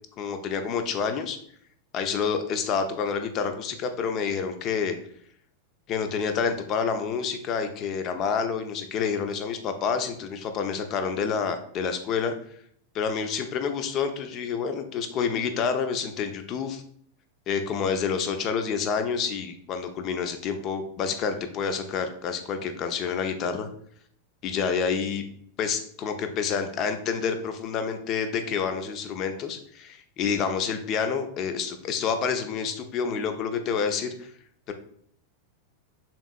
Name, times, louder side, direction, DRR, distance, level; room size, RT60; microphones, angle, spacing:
voice 1, 0.2-1.4 1.9-5.0 5.9-12.3 12.9-16.8 17.5-23.7 24.4-25.2 25.6-34.3 34.7-34.8, left 6 dB, 35° left, 7 dB, 0.4 m, -28 dB
3.4 x 2.9 x 2.4 m, 0.63 s
figure-of-eight pair, 90°, 0 cm